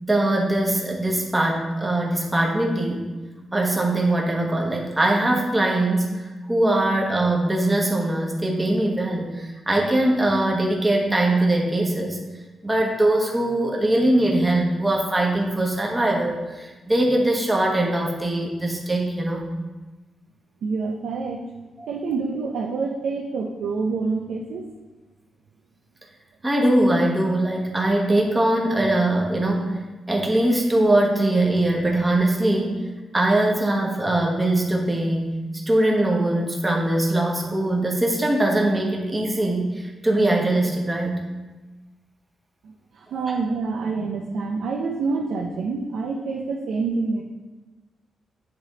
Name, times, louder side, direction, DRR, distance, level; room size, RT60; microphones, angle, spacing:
voice 1, 0.0-3.0 3.5-12.2 12.6-19.4 26.4-29.8 30.1-32.8 33.1-35.3 35.7-41.2, right 1 dB, 15° right, -1 dB, 1.2 m, -21 dB
voice 2, 20.6-21.4 21.9-24.7 42.6-47.2, right 4 dB, 85° right, 1 dB, 0.6 m, -27 dB
8.9 x 3.5 x 4.0 m, 1.2 s
cardioid pair, 115°, 0 cm